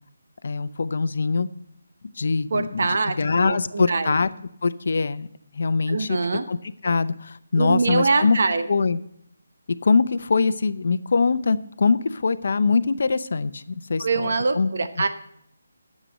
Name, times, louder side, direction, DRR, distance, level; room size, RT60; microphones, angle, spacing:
voice 1, 0.4-1.5 2.0-4.3 4.6-5.3 5.5-6.2 6.5-6.6 6.8-8.4 8.7-9.0 9.7-14.7, left 4 dB, 55° left, 13 dB, 0.6 m, -23 dB
voice 2, 2.5-4.1 5.9-6.4 7.6-8.7 14.0-15.1, right 4 dB, 55° right, 9 dB, 1.0 m, -24 dB
9.9 x 7.5 x 6.4 m, 0.74 s
hypercardioid pair, 165°, 0 cm